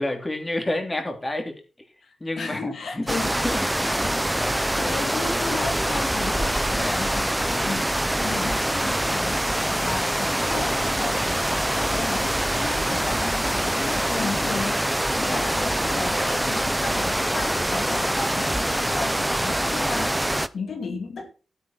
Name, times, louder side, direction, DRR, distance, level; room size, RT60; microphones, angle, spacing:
voice 1, 0.0-1.9 2.2-3.7 6.7-7.1 15.1-15.6, left 1 dB, 20° left, 3.3 m, -30 dB
voice 2, 2.0-3.3 3.8-21.3, left 4 dB, 75° left, 2.3 m, -34 dB
sound 1, 3.1-20.5, right 1 dB, 10° right, 0.7 m, -24 dB
12.5 x 9.7 x 4.5 m
cardioid pair, 85°, 0 cm